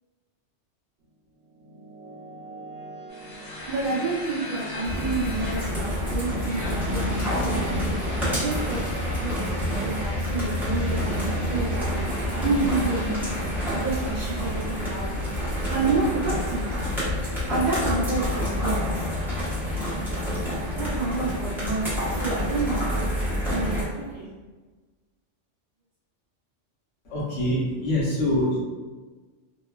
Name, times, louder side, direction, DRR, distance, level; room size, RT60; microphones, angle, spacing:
sound 1, 1.0-12.0, equal, 85° right, 1.0 m, -44 dB
sound 2, 3.1-9.5, left 2 dB, 55° left, 1.0 m, -40 dB
voice 1, 3.7-8.8 9.1-9.4 9.8-13.4 13.7-15.1 15.7-16.9 17.5-19.1 20.8-22.9 23.5-24.3, right 3 dB, 55° right, -7 dB, 0.6 m, -29 dB
sound 3, 4.8-23.8, equal, ahead, 0.7 m, -28 dB
voice 2, 27.1-28.6, left 1 dB, 85° left, -6 dB, 1.2 m, -24 dB
3.0 x 2.2 x 2.2 m, 1.3 s
omnidirectional pair, 1.2 m